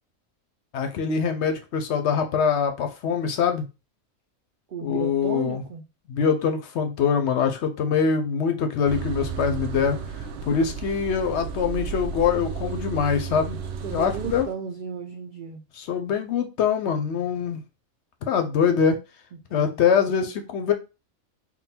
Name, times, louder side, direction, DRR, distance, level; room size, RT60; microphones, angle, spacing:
voice 1, 0.7-3.7 4.8-5.6 6.1-13.6 13.9-14.5 15.8-17.6 18.3-19.0 19.5-20.7, left 6 dB, 65° left, 7 dB, 0.7 m, -24 dB
voice 2, 4.7-5.8 13.8-15.6 19.5-19.8, right 6 dB, 90° right, 4 dB, 0.4 m, -34 dB
sound 1, 8.9-14.4, right 7 dB, 60° right, 0.7 m, -33 dB
3.7 x 2.2 x 4.2 m, 0.28 s
omnidirectional pair, 1.4 m